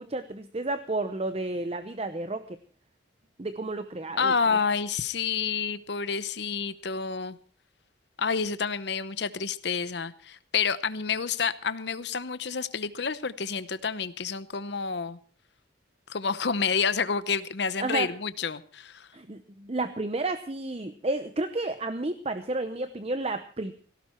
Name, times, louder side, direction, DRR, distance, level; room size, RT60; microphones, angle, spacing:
voice 1, 0.0-2.6 3.4-4.6 17.8-18.1 19.1-23.7, right 2 dB, 30° right, 10 dB, 0.7 m, -31 dB
voice 2, 4.2-7.4 8.2-15.2 16.1-19.1, left 5 dB, 60° left, 15 dB, 0.8 m, -29 dB
18.5 x 16.5 x 4.4 m, 0.43 s
head